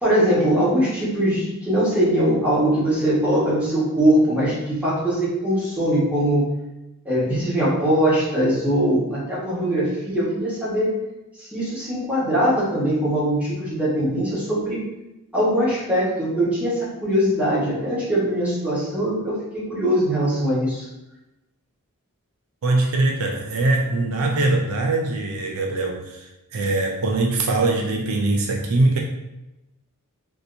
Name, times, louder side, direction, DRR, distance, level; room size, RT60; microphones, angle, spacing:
voice 1, 0.0-6.5 7.0-10.9 11.4-14.8 15.3-20.9, equal, 5° right, -9 dB, 1.3 m, -21 dB
voice 2, 22.6-29.0, right 2 dB, 70° right, 1 dB, 0.4 m, -22 dB
3.5 x 2.8 x 2.6 m, 0.95 s
head